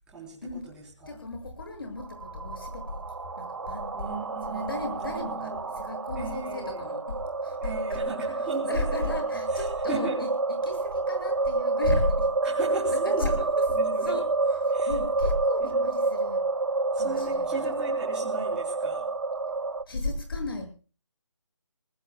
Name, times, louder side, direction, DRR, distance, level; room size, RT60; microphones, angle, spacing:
voice 1, 0.1-0.4 0.7-1.2 3.9-5.7 6.2-6.8 7.6-9.0 9.5-10.2 12.4-13.4 13.7-14.1 14.7-14.9 15.6-15.9 16.9-19.1, right 2 dB, 5° right, -5 dB, 4.1 m, -37 dB
voice 2, 1.1-3.1 3.3-4.2 4.5-8.0 8.6-10.3 10.6-12.3 12.9-13.7 14.0-16.5 17.0-17.8 19.9-20.7, left 2 dB, 50° left, 4 dB, 7.5 m, -34 dB
sound 1, 2.0-19.8, right 3 dB, 65° right, 1.3 m, -29 dB
29.0 x 20.0 x 2.4 m, 0.37 s
figure-of-eight pair, 170°, 15 cm